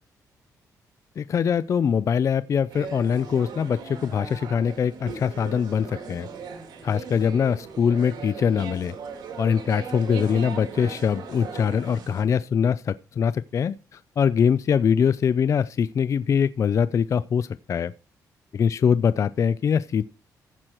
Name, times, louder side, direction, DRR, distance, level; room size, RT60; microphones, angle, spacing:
voice 1, 1.2-6.3 6.8-8.9 9.4-17.9 18.5-20.0, left 7 dB, 50° left, 0.4 m, -23 dB
sound 1, 2.7-12.2, right 5 dB, 85° right, 2.5 m, -38 dB
15.0 x 6.3 x 4.4 m
cardioid pair, 105°, 7 cm